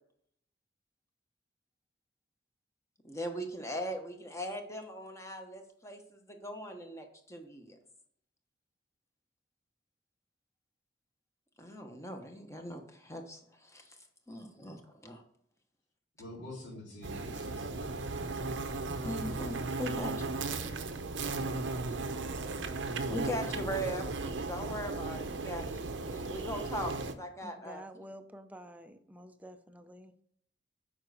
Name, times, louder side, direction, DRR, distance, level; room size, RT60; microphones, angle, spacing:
voice 1, 3.0-7.8 11.6-14.0 14.3-15.2 19.0-20.1 23.1-27.8, equal, 15° left, 1.1 m, -40 dB
voice 2, 16.2-18.2, left 1 dB, 70° left, 2.7 m, -47 dB
sound 1, 17.0-27.1, right 3 dB, 90° right, 0.8 m, -36 dB
voice 3, 27.4-30.1, right 1 dB, 10° right, 0.6 m, -49 dB
7.2 x 5.2 x 4.9 m
head